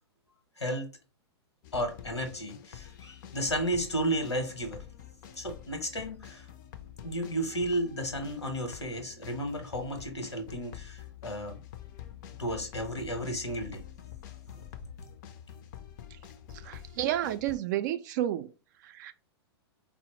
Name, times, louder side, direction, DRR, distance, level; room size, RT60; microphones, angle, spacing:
voice 1, 0.6-0.9 1.7-4.8 5.3-6.5 7.0-11.6 12.4-13.8 14.5-14.6, equal, 85° left, 0.9 m, -33 dB
sound 1, 1.6-17.6, left 10 dB, 45° left, 0.4 m, -47 dB
voice 2, 16.6-18.5 18.8-19.1, right 12 dB, 45° right, 0.4 m, -31 dB
4.1 x 2.0 x 2.9 m
figure-of-eight pair, 105°, 14 cm